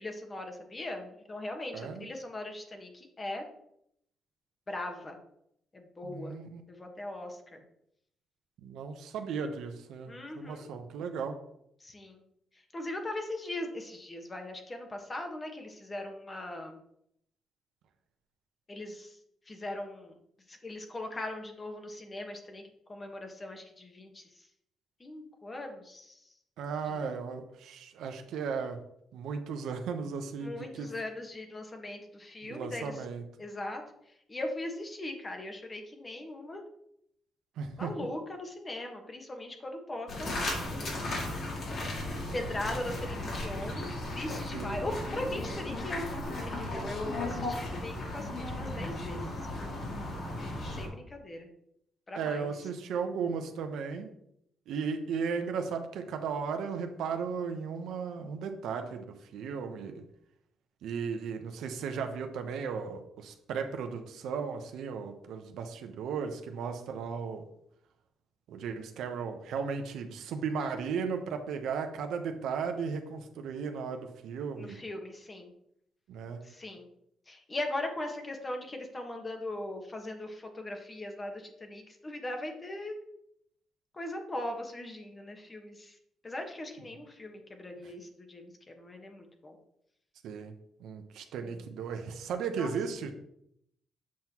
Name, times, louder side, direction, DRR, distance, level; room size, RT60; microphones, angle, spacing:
voice 1, 0.0-3.4 4.7-5.2 5.7-6.4 6.7-7.6 10.1-10.7 11.8-12.2 12.7-16.8 18.7-19.2 19.5-20.2 20.5-24.5 25.0-26.2 26.9-27.0 30.4-33.0 33.4-33.8 34.3-36.6 37.8-40.4 41.6-41.8 42.3-43.9 44.1-49.7 50.7-51.5 52.1-52.5 74.6-75.5 76.4-76.9 77.3-83.0 83.9-86.0 86.2-89.6 91.4-91.6 92.5-92.7, left 1 dB, 25° left, 4 dB, 1.3 m, -39 dB
voice 2, 1.7-2.1 6.0-6.6 8.6-11.4 26.6-28.8 29.1-30.9 32.4-33.2 37.6-37.9 44.5-44.9 52.1-54.1 54.7-60.0 60.8-67.4 68.5-74.8 76.1-76.4 90.2-90.5 90.8-93.1, right 6 dB, 80° right, 6 dB, 0.8 m, -35 dB
sound 1, 40.1-50.9, left 1 dB, 60° left, 2.4 m, -36 dB
7.5 x 5.7 x 2.9 m, 0.75 s
cardioid pair, 90°, 0 cm